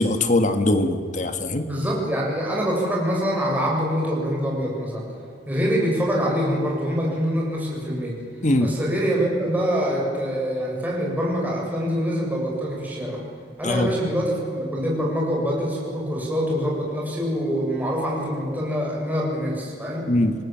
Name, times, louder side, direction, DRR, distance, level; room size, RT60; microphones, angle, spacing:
voice 1, 0.0-1.7 8.4-8.7 13.6-13.9 20.1-20.3, left 1 dB, 40° left, 8 dB, 1.6 m, -21 dB
voice 2, 1.6-5.1 5.5-8.2 8.6-13.2 13.6-20.1, equal, 10° right, -3 dB, 7.1 m, -25 dB
27.0 x 19.0 x 7.5 m, 2.4 s
head